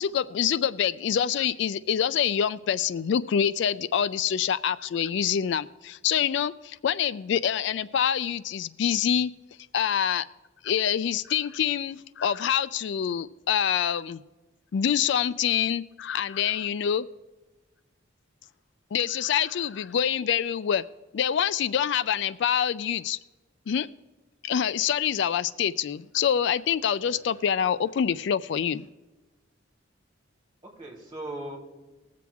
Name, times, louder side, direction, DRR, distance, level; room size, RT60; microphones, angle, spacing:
voice 1, 0.0-9.3 9.7-10.3 10.6-14.2 14.7-17.1 18.9-20.8 21.1-23.2 23.7-23.9 24.4-28.9, left 8 dB, 60° left, 16 dB, 0.3 m, -26 dB
voice 2, 27.1-27.4 30.6-31.6, right 1 dB, 25° right, -2 dB, 3.4 m, -39 dB
20.0 x 7.7 x 3.5 m, 1.2 s
head